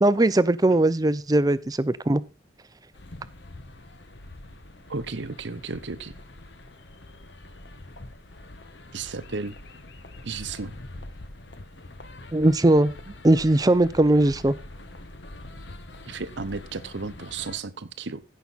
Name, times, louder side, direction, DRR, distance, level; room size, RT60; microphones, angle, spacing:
voice 1, 0.0-2.2 12.3-12.9 13.2-14.5, right 1 dB, 20° right, 0.5 m, -19 dB
sound 1, 2.9-17.6, left 2 dB, 60° left, 1.2 m, -44 dB
voice 2, 4.9-6.1 8.9-9.6 10.2-10.8 16.0-18.2, right 4 dB, 65° right, 0.9 m, -34 dB
15.5 x 5.9 x 4.1 m
head